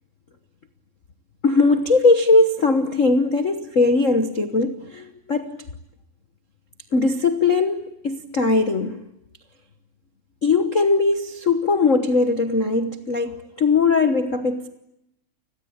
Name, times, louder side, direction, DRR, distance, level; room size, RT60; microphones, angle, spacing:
voice 1, 1.4-5.6 6.9-9.1 10.4-14.7, left 3 dB, 70° left, 9 dB, 0.7 m, -20 dB
30.0 x 21.0 x 8.7 m, 0.85 s
omnidirectional pair, 3.5 m